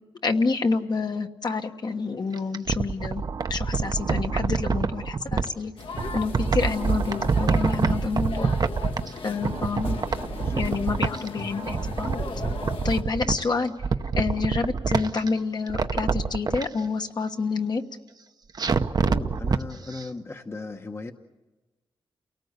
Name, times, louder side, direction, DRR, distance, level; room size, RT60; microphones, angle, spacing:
voice 1, 0.2-3.2 3.5-5.7 6.1-8.5 9.2-10.0 10.6-12.4 12.8-13.7 14.1-17.8, left 4 dB, 50° left, 5 dB, 1.3 m, -28 dB
sound 1, 2.3-5.5 6.0-9.2 9.4-11.3 11.6-13.5 13.8-15.3 15.7-16.7 18.6-19.6 20.0-20.1, right 5 dB, 45° right, 0.8 m, -26 dB
sound 2, 5.8-13.0, left 3 dB, 75° left, 2.2 m, -36 dB
voice 2, 9.7-11.4 19.0-21.1, left 3 dB, 30° left, 6 dB, 1.0 m, -38 dB
29.5 x 18.5 x 8.1 m, 1.2 s
wide cardioid pair, 140°, 9 cm